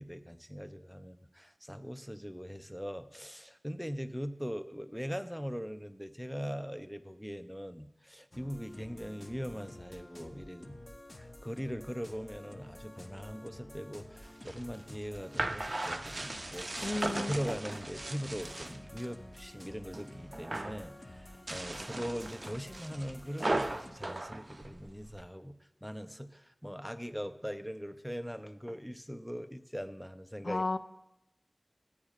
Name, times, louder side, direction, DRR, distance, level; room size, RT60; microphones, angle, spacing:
voice 1, 0.0-10.8 11.2-16.9 17.3-25.6 25.8-30.6, equal, ahead, 9 dB, 0.5 m, -41 dB
sound 1, 8.3-23.9, left 1 dB, 40° left, 0.8 m, -51 dB
sound 2, 14.2-19.1 19.5-20.1 20.3-20.8 21.3-25.2, right 2 dB, 50° right, 0.5 m, -37 dB
voice 2, 16.8-17.3 30.4-30.8, left 2 dB, 70° left, 10 dB, 0.4 m, -32 dB
14.5 x 9.8 x 2.4 m, 0.88 s
wide cardioid pair, 60°, 0 cm